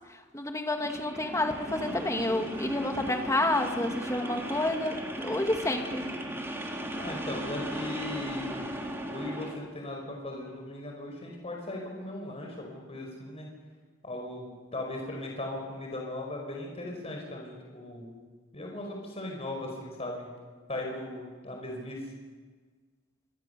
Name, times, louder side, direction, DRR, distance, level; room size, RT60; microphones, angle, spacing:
voice 1, 0.3-6.1, left 2 dB, 15° left, 4 dB, 2.3 m, -29 dB
sound 1, 0.7-9.6, right 1 dB, 15° right, 3.7 m, -36 dB
voice 2, 6.9-8.6 9.0-13.5 14.0-18.1 18.5-20.3 20.7-22.1, left 1 dB, 35° left, 1 dB, 5.1 m, -38 dB
26.0 x 24.5 x 6.9 m, 1.4 s
head